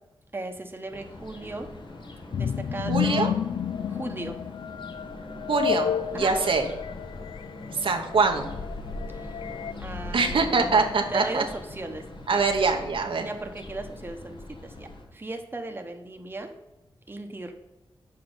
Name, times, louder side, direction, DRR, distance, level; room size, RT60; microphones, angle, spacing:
voice 1, 0.3-1.7 2.3-3.3 3.9-4.4 6.1-6.4 9.1-9.3 9.8-12.0 12.3-12.4 13.2-16.5 17.1-17.5, right 2 dB, 25° right, 4 dB, 1.0 m, -36 dB
sound 1, 0.9-15.0, left 2 dB, 60° left, 1.5 m, -41 dB
sound 2, 2.3-9.7, left 9 dB, 75° left, 0.3 m, -31 dB
voice 2, 2.9-3.3 5.5-6.7 7.7-8.5 10.1-11.4 12.3-13.3, right 4 dB, 70° right, 4 dB, 0.9 m, -24 dB
7.0 x 4.7 x 5.4 m, 0.97 s
cardioid pair, 75°, 9 cm